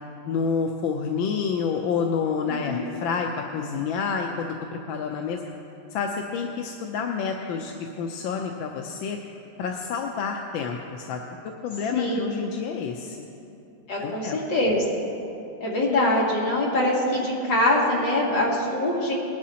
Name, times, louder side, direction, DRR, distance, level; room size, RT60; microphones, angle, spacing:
voice 1, 0.3-5.5 5.9-9.2 9.6-11.2 11.6-13.3 14.0-14.4, left 5 dB, 85° left, 2 dB, 1.5 m, -29 dB
voice 2, 11.9-12.2 13.9-14.8 15.6-19.1, left 1 dB, 70° left, -5 dB, 2.9 m, -23 dB
19.5 x 11.5 x 2.9 m, 2.8 s
omnidirectional pair, 2.1 m